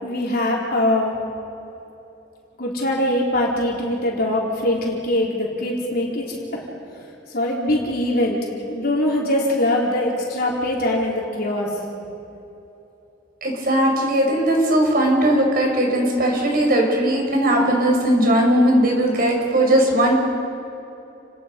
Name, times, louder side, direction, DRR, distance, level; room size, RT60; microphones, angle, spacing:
voice 1, 0.0-1.1 2.6-6.6 7.3-8.4 8.7-11.7, left 1 dB, 55° left, -3 dB, 4.3 m, -22 dB
voice 2, 13.4-20.1, right 1 dB, 50° right, 1 dB, 5.3 m, -18 dB
30.0 x 19.5 x 5.4 m, 2.9 s
head